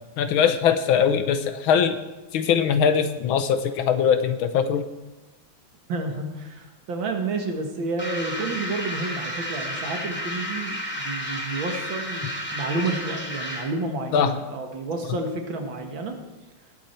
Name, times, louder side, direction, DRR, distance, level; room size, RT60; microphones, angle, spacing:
voice 1, 0.2-2.0 2.3-4.8 14.1-14.3, left 7 dB, 75° left, 10 dB, 1.6 m, -21 dB
voice 2, 5.9-16.2, right 3 dB, 65° right, 4 dB, 2.2 m, -30 dB
sound 1, 8.0-13.8, equal, 5° left, 3.0 m, -32 dB
18.5 x 8.3 x 4.4 m, 1.1 s
omnidirectional pair, 2.4 m